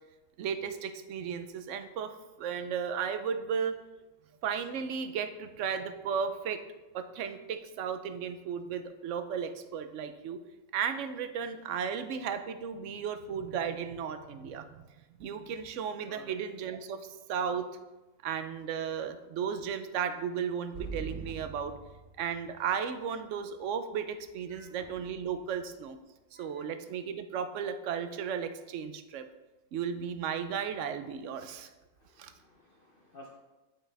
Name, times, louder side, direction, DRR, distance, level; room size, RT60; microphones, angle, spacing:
voice 1, 0.4-3.8 4.4-6.6 6.9-10.4 10.7-14.9 15.2-17.6 18.2-21.7 22.2-26.0 26.4-29.3 29.7-31.7 32.2-32.3, right 7 dB, 65° right, 10 dB, 0.9 m, -35 dB
voice 2, 16.0-16.4 24.5-24.7 26.3-26.7 32.0-33.4, left 1 dB, 50° left, 0 dB, 0.8 m, -53 dB
sound 1, 20.7-22.5 24.8-25.7, right 4 dB, 35° right, 2.5 m, -43 dB
9.6 x 5.4 x 3.3 m, 1.1 s
omnidirectional pair, 1.5 m